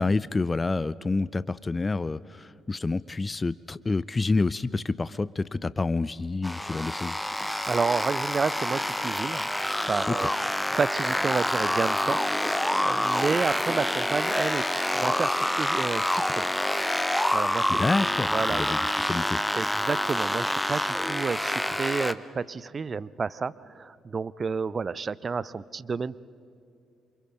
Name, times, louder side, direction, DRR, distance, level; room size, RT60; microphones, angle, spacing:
voice 1, 0.0-7.2 10.1-10.3 17.8-19.4, left 3 dB, 25° left, 19 dB, 0.5 m, -28 dB
sound 1, 6.4-22.1, left 1 dB, 5° left, 0.9 m, -27 dB
voice 2, 7.4-9.5 9.9-10.3 10.7-12.2 12.5-14.7 14.9-16.5 17.3-17.8 18.3-18.6 19.5-26.2, right 5 dB, 35° right, 20 dB, 0.5 m, -30 dB
28.0 x 25.0 x 5.2 m, 2.5 s
figure-of-eight pair, 45°, 0 cm